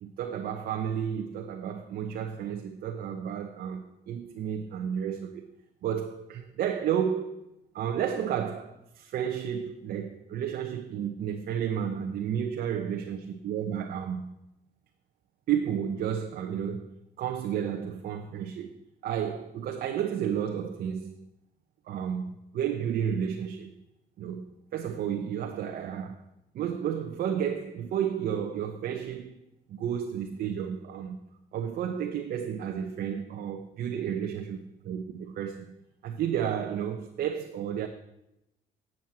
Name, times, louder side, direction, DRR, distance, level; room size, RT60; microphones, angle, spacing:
voice 1, 0.0-5.5 5.8-7.4 7.7-14.3 15.5-18.7 19.0-21.2 21.9-23.7 24.2-26.2 26.5-29.4 29.7-31.2 31.5-35.6 36.0-37.9, right 8 dB, 60° right, 0.9 m, -32 dB
10.5 x 7.7 x 6.1 m
cardioid pair, 110°, 17 cm